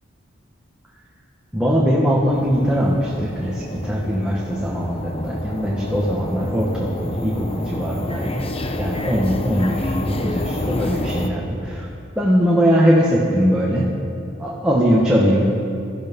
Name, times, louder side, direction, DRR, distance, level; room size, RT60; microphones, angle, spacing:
voice 1, 1.5-8.4 8.8-11.9 12.1-13.9 14.4-15.5, equal, 5° right, -6 dB, 1.6 m, -20 dB
sound 1, 2.3-11.3, left 1 dB, 30° left, 0.9 m, -29 dB
18.5 x 13.5 x 5.5 m, 2.6 s
head